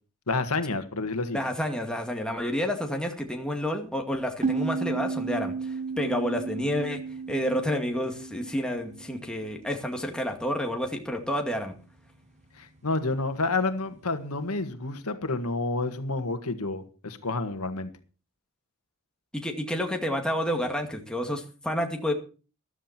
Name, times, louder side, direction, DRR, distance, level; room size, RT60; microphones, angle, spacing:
voice 1, 0.3-1.4 12.6-17.9, left 3 dB, 80° left, 8 dB, 1.7 m, -29 dB
voice 2, 1.3-7.0 7.3-11.8 19.3-22.1, equal, 5° left, 2 dB, 2.2 m, -29 dB
sound 1, 4.4-9.8, right 4 dB, 30° right, 1.0 m, -33 dB
14.0 x 12.5 x 4.4 m, 0.35 s
head